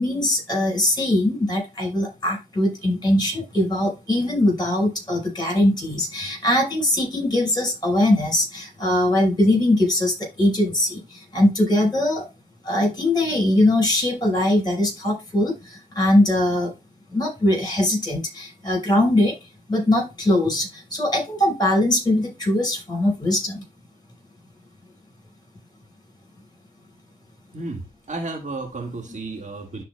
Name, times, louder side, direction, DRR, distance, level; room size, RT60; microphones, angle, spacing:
voice 1, 0.0-11.0 11.3-12.2 12.6-15.5 15.9-16.7 17.1-19.3 19.7-23.6, left 1 dB, 25° left, 2 dB, 4.9 m, -21 dB
voice 2, 27.5-29.8, right 3 dB, 45° right, 2 dB, 2.0 m, -32 dB
12.0 x 4.4 x 2.3 m, 0.26 s
supercardioid pair, 45°, 17 cm